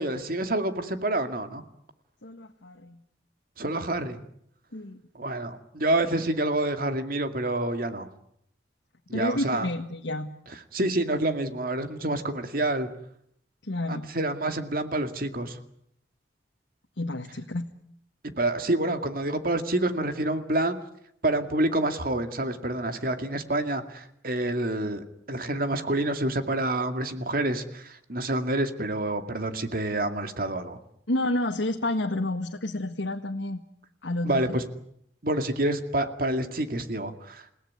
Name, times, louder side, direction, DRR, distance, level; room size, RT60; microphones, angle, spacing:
voice 1, 0.0-1.6 3.6-4.2 5.2-8.1 9.1-9.7 10.7-12.9 13.9-15.6 18.4-20.8 21.2-30.8 34.2-34.6 35.2-37.4, right 1 dB, 50° right, 8 dB, 2.3 m, -28 dB
voice 2, 2.2-3.0 4.7-5.0 9.1-10.3 13.6-14.1 17.0-17.7 31.1-33.6 34.0-34.5, left 1 dB, 90° left, 3 dB, 1.7 m, -30 dB
28.5 x 18.0 x 9.6 m, 0.71 s
head